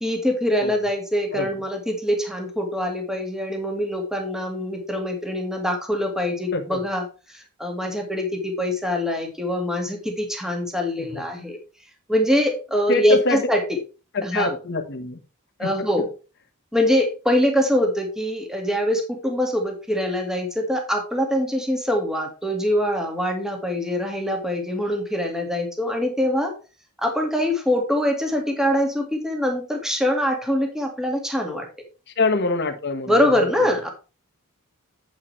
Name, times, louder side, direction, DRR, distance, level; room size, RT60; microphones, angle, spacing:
voice 1, 0.0-11.6 12.1-13.6 14.2-14.6 15.6-16.1 16.7-26.5 27.0-31.7 33.1-33.9, left 1 dB, ahead, 1.9 m, -23 dB
voice 2, 12.9-13.4 14.1-15.2 15.6-15.9 32.2-33.5, left 3 dB, 50° left, 1.4 m, -25 dB
8.8 x 8.2 x 3.3 m
head